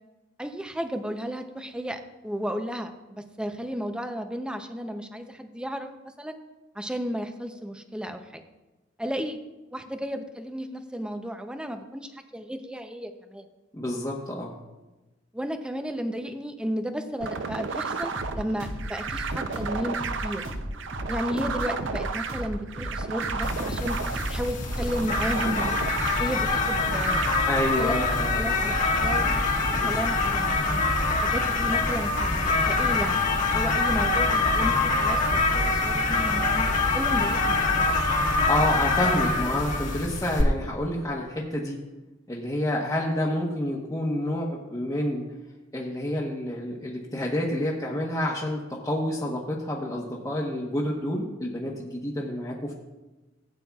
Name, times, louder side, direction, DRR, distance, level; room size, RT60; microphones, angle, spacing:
voice 1, 0.4-6.4 6.7-8.4 9.0-9.4 9.7-13.4 15.3-20.4 21.1-24.0 24.3-25.9 26.2-27.3 27.8-29.5 29.8-30.8 31.1-36.7 36.9-37.9, equal, 5° right, 7 dB, 0.6 m, -33 dB
voice 2, 13.7-14.5 27.5-28.5 29.7-30.0 38.5-41.8 42.3-45.2 45.7-52.7, left 1 dB, 15° left, -5 dB, 1.0 m, -28 dB
sound 1, 17.2-27.4, right 5 dB, 65° right, 0.5 m, -33 dB
sound 2, 18.1-27.8, equal, 85° right, 2.7 m, -37 dB
sound 3, 23.4-40.4, left 3 dB, 40° left, 1.3 m, -25 dB
16.5 x 8.8 x 2.4 m, 1.1 s
head